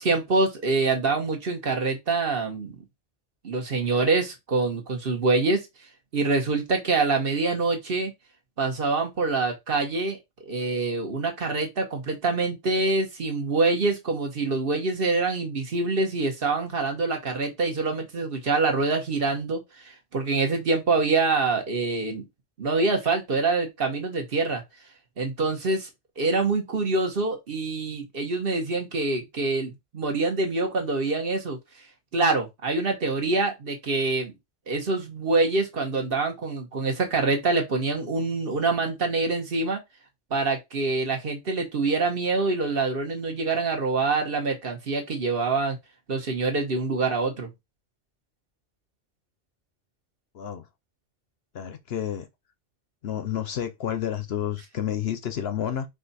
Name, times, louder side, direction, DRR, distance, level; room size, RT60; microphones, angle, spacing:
voice 1, 0.0-2.8 3.4-5.7 6.1-8.1 8.6-22.3 22.6-24.6 25.2-25.9 26.2-31.6 32.1-34.3 34.7-39.8 40.3-45.8 46.1-47.5, right 3 dB, 50° right, 1.2 m, -25 dB
voice 2, 51.5-52.3 53.0-55.9, left 10 dB, 60° left, 0.8 m, -30 dB
4.9 x 2.4 x 4.1 m
omnidirectional pair, 1.3 m